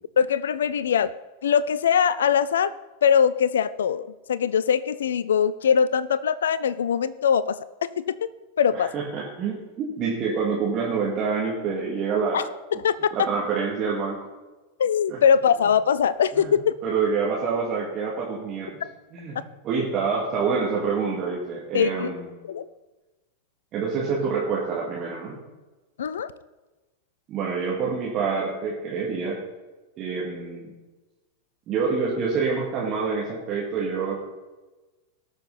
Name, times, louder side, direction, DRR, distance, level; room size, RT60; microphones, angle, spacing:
voice 1, 0.2-1.1 1.4-2.7 3.0-8.3 8.6-8.9 12.3-13.1 14.8-16.7 21.7-22.1 22.5-22.7 26.0-26.3, left 7 dB, 65° left, 17 dB, 0.4 m, -22 dB
voice 2, 8.7-12.4 13.1-14.2 15.1-15.2 16.4-16.5 16.8-18.7 19.1-19.4 19.6-22.3 23.7-25.4 27.3-29.4 30.0-30.7 31.7-34.2, right 5 dB, 35° right, -4 dB, 2.3 m, -27 dB
19.0 x 6.6 x 4.1 m, 1.2 s
figure-of-eight pair, 90°, 0 cm